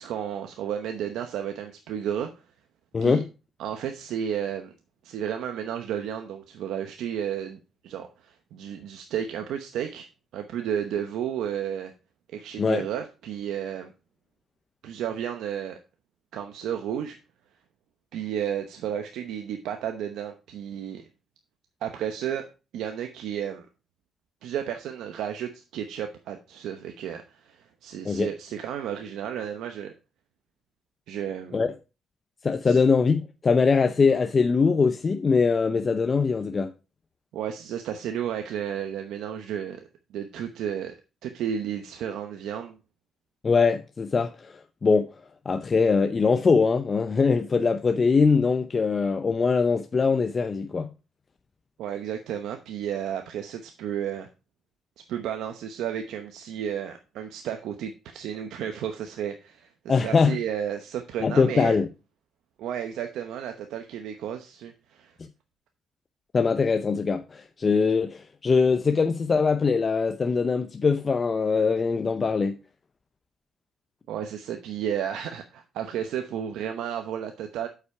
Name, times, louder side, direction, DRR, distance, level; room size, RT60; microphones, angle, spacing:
voice 1, 0.0-2.5 3.0-3.2 3.6-4.7 5.0-11.9 12.3-13.9 14.8-15.8 16.3-17.2 18.1-21.1 21.8-22.5 22.7-23.7 24.4-29.9 31.1-31.6 32.7-32.8 37.3-40.9 41.2-42.8 51.8-54.3 55.1-61.8 62.6-65.1 74.1-77.7, right 9 dB, 85° right, 0.9 m, -32 dB
voice 2, 2.9-3.2 12.6-12.8 28.0-28.3 31.5-31.7 32.4-36.7 43.4-45.1 45.5-50.9 59.9-60.4 61.2-61.9 66.3-72.6, left 5 dB, 35° left, 0.6 m, -22 dB
8.2 x 5.7 x 4.7 m
cardioid pair, 90°, 0 cm